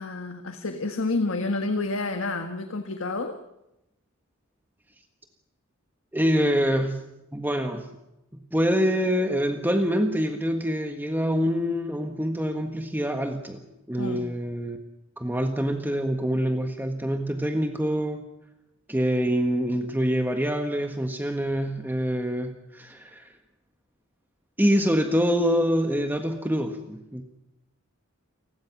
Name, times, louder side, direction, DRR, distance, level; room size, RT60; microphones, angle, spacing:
voice 1, 0.0-3.4 14.0-14.3, left 3 dB, 70° left, 7 dB, 1.7 m, -29 dB
voice 2, 6.1-7.0 7.3-7.9 8.5-14.8 15.2-18.2 18.9-23.3 24.6-27.2, equal, 10° right, 5 dB, 1.5 m, -25 dB
29.5 x 21.0 x 6.1 m, 0.92 s
head